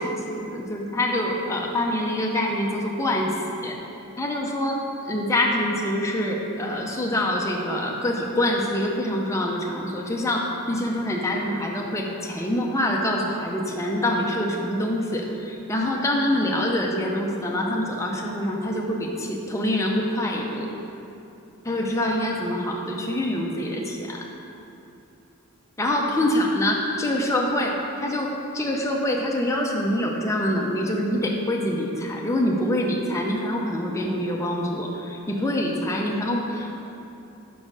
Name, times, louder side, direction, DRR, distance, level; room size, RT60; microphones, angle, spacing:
voice 1, 0.0-3.8 4.2-20.7 21.6-24.3 25.8-36.8, left 1 dB, 15° left, -1 dB, 0.4 m, -25 dB
4.9 x 4.3 x 6.0 m, 2.8 s
head